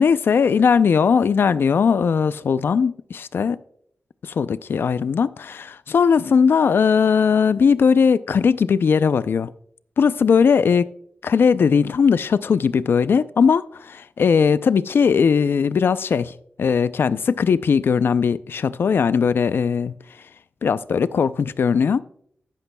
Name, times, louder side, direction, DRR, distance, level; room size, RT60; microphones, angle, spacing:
voice 1, 0.0-3.6 4.2-9.5 10.0-10.8 11.2-16.3 16.6-19.9 20.6-22.0, left 6 dB, 70° left, 0.4 m, -19 dB
14.0 x 11.5 x 2.2 m
wide cardioid pair, 175°, 4 cm